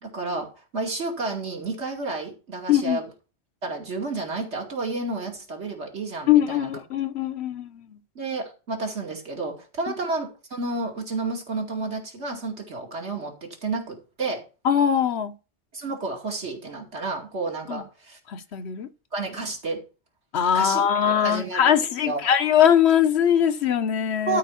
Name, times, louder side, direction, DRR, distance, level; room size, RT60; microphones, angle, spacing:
voice 1, 0.0-3.1 3.6-6.7 8.1-14.4 15.7-18.2 19.1-19.8 20.5-21.8 22.0-22.2 24.3-24.4, right 3 dB, 80° right, 2.7 m, -31 dB
voice 2, 2.7-3.0 6.3-8.0 14.6-15.3 17.7-17.8 18.3-18.9 20.3-24.4, left 9 dB, 70° left, 1.1 m, -21 dB
12.5 x 4.5 x 5.8 m
omnidirectional pair, 1.1 m